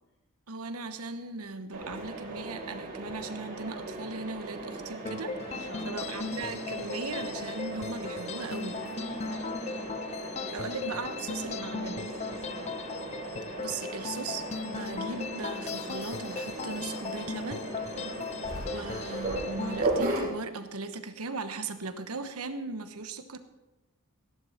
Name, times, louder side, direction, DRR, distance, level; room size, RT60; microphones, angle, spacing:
voice 1, 0.5-8.8 10.5-12.0 13.6-17.7 18.0-18.2 18.7-23.4, right 3 dB, 80° right, 9 dB, 1.1 m, -38 dB
Mechanisms, 1.7-20.2, right 2 dB, 45° right, 3.4 m, -37 dB
sound 1, 5.1-19.8, left 5 dB, 30° left, 0.4 m, -38 dB
voice 2, 5.5-6.3 8.8-9.7 10.6-11.0 11.7-12.8 17.9-18.3, equal, 60° left, -1 dB, 3.6 m, -46 dB
16.0 x 11.0 x 4.3 m, 1.0 s
head